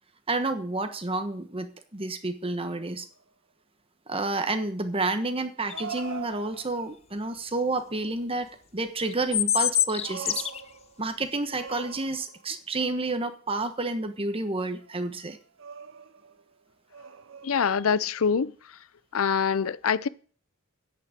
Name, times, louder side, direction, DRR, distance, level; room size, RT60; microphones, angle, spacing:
voice 1, 0.3-3.1 4.1-8.5 8.7-10.5 11.0-15.4, right 2 dB, 25° right, 1.2 m, -30 dB
sound 1, 3.2-3.3 5.7-6.9 9.5-11.0 11.5-12.6 14.8-15.1 15.6-16.4 16.9-17.9, right 7 dB, 65° right, 0.8 m, -42 dB
sound 2, 5.7-6.0 9.1-10.6, left 11 dB, 30° left, 0.4 m, -25 dB
voice 2, 17.4-18.8 19.1-20.1, left 6 dB, 75° left, 0.6 m, -25 dB
10.0 x 6.2 x 8.2 m
head